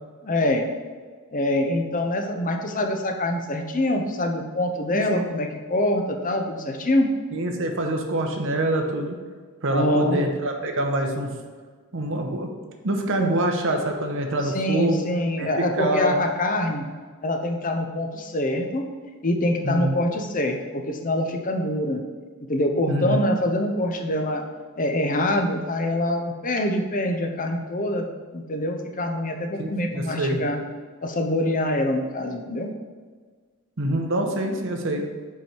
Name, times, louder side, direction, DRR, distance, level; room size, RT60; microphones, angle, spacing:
voice 1, 0.2-0.7 1.3-7.1 9.7-10.2 13.2-13.4 14.4-16.8 17.2-18.8 19.2-22.0 22.5-24.4 24.8-28.1 28.3-30.6 31.0-32.7, left 1 dB, 40° left, 4 dB, 0.7 m, -25 dB
voice 2, 4.9-5.2 7.3-9.2 9.6-11.3 11.9-12.5 12.8-15.0 15.4-15.5 15.7-16.3 19.6-20.0 22.9-23.2 29.6-30.4 33.8-35.0, right 1 dB, 60° right, 3 dB, 0.9 m, -25 dB
5.4 x 4.9 x 4.4 m, 1.5 s
head